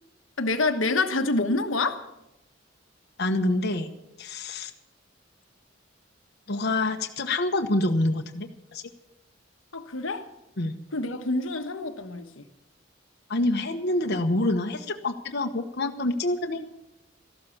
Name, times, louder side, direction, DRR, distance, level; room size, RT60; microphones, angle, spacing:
voice 1, 0.4-2.0 9.7-10.3 10.9-12.4, left 3 dB, 85° left, 7 dB, 1.2 m, -27 dB
voice 2, 3.2-3.9 4.2-4.7 6.5-8.8 10.6-10.8 13.3-16.6, left 2 dB, 55° left, 4 dB, 1.1 m, -26 dB
14.0 x 12.0 x 7.2 m, 0.88 s
head